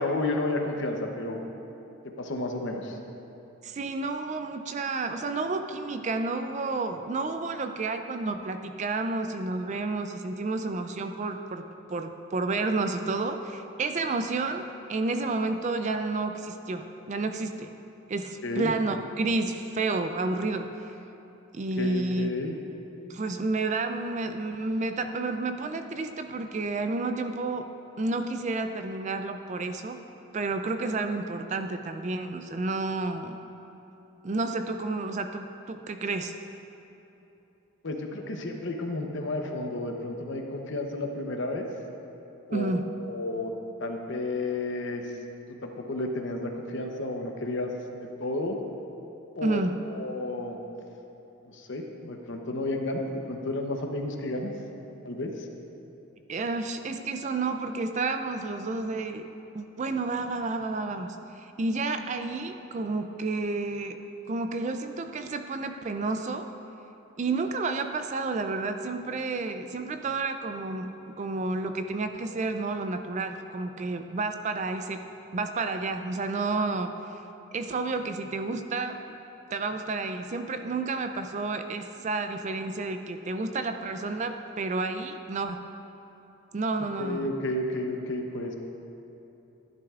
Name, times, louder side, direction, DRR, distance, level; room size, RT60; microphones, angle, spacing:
voice 1, 0.0-1.4 2.2-3.0 18.4-18.7 21.8-22.6 37.8-41.7 42.5-42.7 43.0-43.5 43.8-45.1 45.6-47.7 48.0-48.6 49.3-49.6 49.9-50.6 51.5-54.5 55.0-55.5 87.0-88.5, left 2 dB, 55° left, 3 dB, 0.8 m, -31 dB
voice 2, 3.6-11.6 11.9-17.7 18.1-21.0 21.5-22.3 23.1-27.7 28.0-30.0 30.3-33.4 34.2-36.3 42.5-42.9 49.4-49.8 56.3-59.2 59.5-64.0 64.3-66.5 67.2-75.0 75.3-76.9 77.5-79.2 79.5-85.6 86.5-87.3, right 3 dB, 35° right, 7 dB, 0.3 m, -30 dB
12.0 x 11.0 x 2.4 m, 2.9 s
head